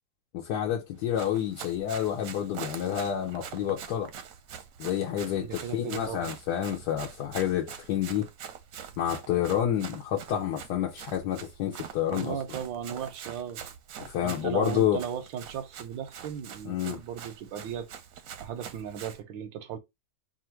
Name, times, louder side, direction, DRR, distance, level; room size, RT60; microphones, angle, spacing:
voice 1, 0.3-4.1 4.8-8.3 9.0-12.4 14.0-15.0 16.7-17.0, left 10 dB, 70° left, 1.2 m, -29 dB
Run, 1.0-19.2, right 8 dB, 65° right, 0.9 m, -45 dB
voice 2, 5.4-6.3 12.1-13.6 14.2-17.9 18.4-19.8, right 8 dB, 90° right, 1.4 m, -36 dB
3.4 x 2.5 x 4.4 m
omnidirectional pair, 2.0 m